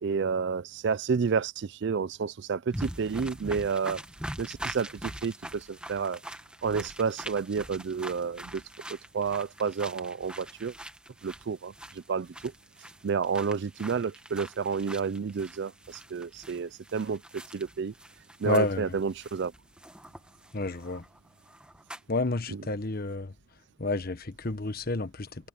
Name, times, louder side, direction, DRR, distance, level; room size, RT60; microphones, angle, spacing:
voice 1, 0.0-4.0 4.4-6.2 6.6-8.6 9.1-10.7 11.2-11.7 12.1-12.3 13.0-15.7 16.1-17.2 17.5-17.9 18.4-19.5 22.5-22.6, right 5 dB, 55° right, 0.4 m, -30 dB
sound 1, 2.7-22.2, right 1 dB, 5° right, 1.2 m, -44 dB
voice 2, 18.4-18.9 20.5-21.0 22.1-23.3 23.8-25.5, left 2 dB, 45° left, 1.3 m, -30 dB
head